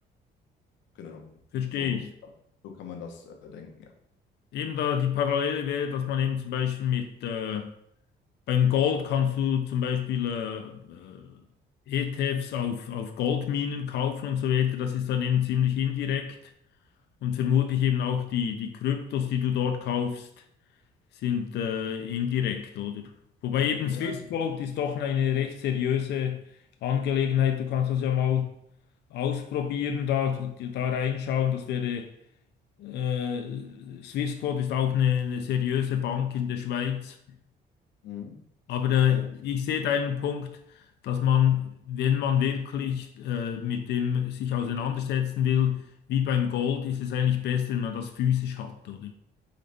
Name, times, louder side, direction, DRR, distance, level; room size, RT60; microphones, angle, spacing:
voice 1, 0.9-1.3 1.7-2.3 2.6-3.9 23.8-24.3 38.0-38.4 39.1-39.2, left 6 dB, 85° left, 0.9 m, -42 dB
voice 2, 1.5-2.1 4.5-7.7 8.5-11.4 11.9-16.4 17.2-20.3 21.2-23.1 23.4-26.5 26.8-28.6 29.1-32.1 32.8-37.2 38.7-40.6 41.0-49.1, left 9 dB, 65° left, 0.5 m, -27 dB
4.0 x 3.9 x 3.4 m
cardioid pair, 135°, 19 cm